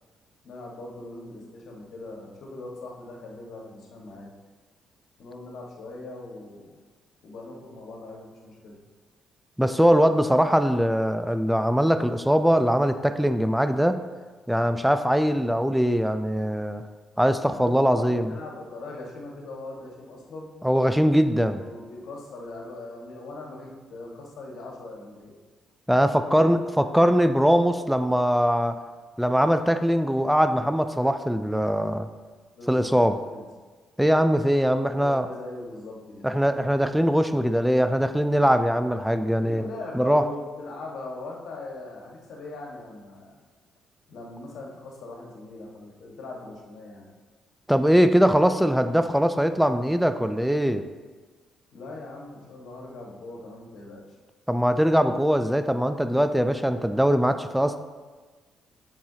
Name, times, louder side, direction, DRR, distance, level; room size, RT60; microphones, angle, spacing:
voice 1, 0.4-4.3 5.2-6.7 7.2-8.8 17.5-20.5 21.5-25.3 26.2-26.4 26.8-27.0 32.5-33.4 34.4-36.3 39.3-43.3 44.1-47.0 51.7-54.0, left 2 dB, 75° left, -1 dB, 1.4 m, -40 dB
voice 2, 9.6-14.0 14.5-16.8 17.2-18.3 20.6-21.6 25.9-28.8 29.2-32.1 32.7-33.1 34.0-35.3 36.2-39.6 39.9-40.2 47.7-50.8 54.5-57.8, equal, ahead, 9 dB, 0.3 m, -21 dB
7.5 x 5.7 x 2.8 m, 1.4 s
cardioid pair, 90°, 0 cm